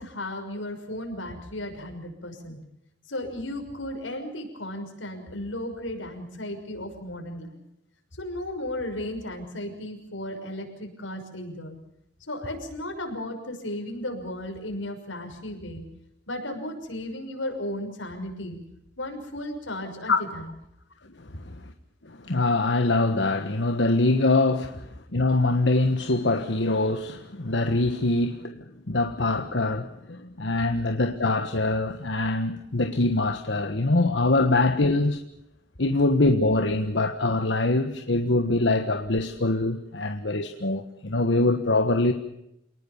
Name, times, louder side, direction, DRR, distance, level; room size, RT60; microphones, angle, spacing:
voice 1, 0.0-2.6 3.1-7.6 8.2-11.8 12.3-15.8 16.3-18.6 19.0-20.5, left 1 dB, 90° left, 6.3 m, -35 dB
voice 2, 22.0-35.2 35.8-42.1, left 2 dB, 65° left, 1.4 m, -24 dB
28.5 x 19.5 x 7.2 m
head